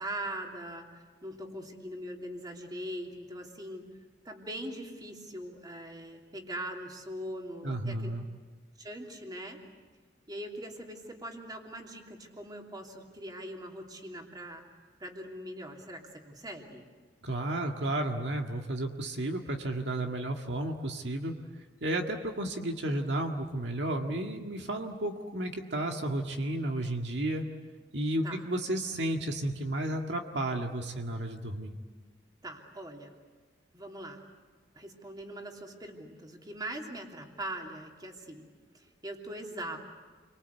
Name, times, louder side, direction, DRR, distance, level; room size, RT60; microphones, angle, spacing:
voice 1, 0.0-3.9 4.2-8.1 8.8-9.6 10.3-14.6 15.0-16.9 28.2-28.4 32.4-33.1 33.7-34.2 34.7-38.5 38.7-39.8, right 1 dB, 25° right, 1 dB, 3.0 m, -41 dB
voice 2, 7.6-8.2 17.2-21.3 21.8-27.4 27.9-31.7, right 1 dB, 70° right, 3 dB, 1.8 m, -32 dB
29.5 x 24.5 x 8.2 m, 1.5 s
head